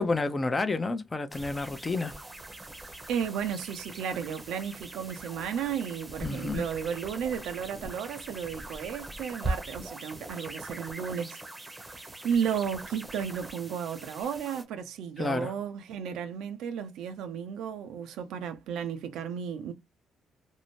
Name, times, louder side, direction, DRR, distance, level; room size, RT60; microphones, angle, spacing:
voice 1, 0.0-2.1 6.2-6.6 15.2-15.5, left 3 dB, 25° left, 0.5 m, -29 dB
Wireless Interference, 1.3-14.6, right 2 dB, 15° right, 0.7 m, -41 dB
voice 2, 3.1-11.4 11.7-19.7, right 7 dB, 85° right, 0.5 m, -34 dB
2.6 x 2.1 x 3.0 m
cardioid pair, 90°, 0 cm